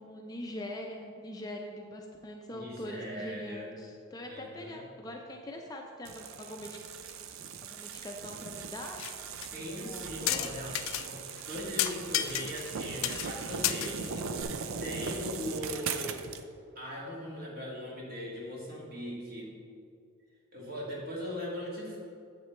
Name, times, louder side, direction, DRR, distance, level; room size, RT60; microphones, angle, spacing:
voice 1, 0.0-6.8 7.6-9.1 9.7-10.5, left 1 dB, 20° left, 2 dB, 0.5 m, -43 dB
voice 2, 2.5-3.7 4.3-4.8 9.5-11.2 11.5-14.5 14.8-16.2 16.8-19.5 20.5-22.0, equal, 45° right, -4 dB, 2.1 m, -40 dB
sound 1, 6.0-16.4, right 5 dB, 75° right, 0.5 m, -39 dB
sound 2, 8.8-9.1 9.4-9.5 10.3-11.0 11.4-11.5 11.8-12.8 13.0-13.3 13.6-14.4, left 12 dB, 75° left, 0.4 m, -31 dB
9.0 x 7.5 x 3.2 m, 2.4 s
head